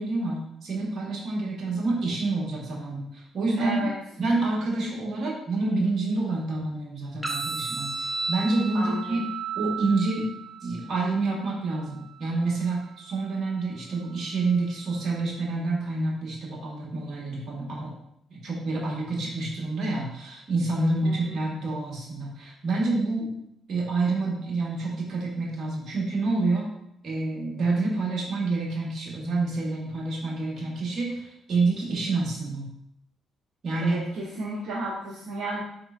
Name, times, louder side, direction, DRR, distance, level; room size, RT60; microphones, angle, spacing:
voice 1, 0.0-3.9 4.2-9.2 9.5-10.3 10.6-17.9 18.3-23.3 23.7-26.7 27.0-32.7 33.6-34.0, right 3 dB, 60° right, -2 dB, 1.2 m, -28 dB
voice 2, 3.6-3.9 8.7-9.2 21.0-21.4 33.8-35.6, right 2 dB, 75° right, -4 dB, 0.7 m, -33 dB
sound 1, 7.2-15.2, right 4 dB, 10° right, 0.6 m, -36 dB
4.2 x 3.6 x 2.4 m, 0.75 s
cardioid pair, 90°, 0 cm